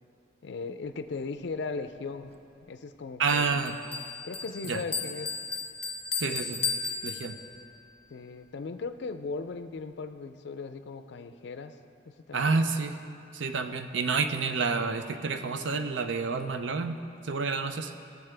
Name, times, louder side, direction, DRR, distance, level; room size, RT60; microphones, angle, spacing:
voice 1, 0.4-3.6 4.2-5.3 8.1-11.8 12.1-12.6, left 4 dB, 65° left, 9 dB, 0.4 m, -38 dB
voice 2, 3.2-3.7 4.7-4.8 6.2-6.6 7.0-7.4 12.3-13.0 13.3-17.0 17.2-17.9, right 4 dB, 80° right, 8 dB, 0.6 m, -29 dB
Bell, 3.3-7.8, left 5 dB, 35° left, 0.7 m, -35 dB
17.0 x 7.1 x 3.4 m, 2.5 s
head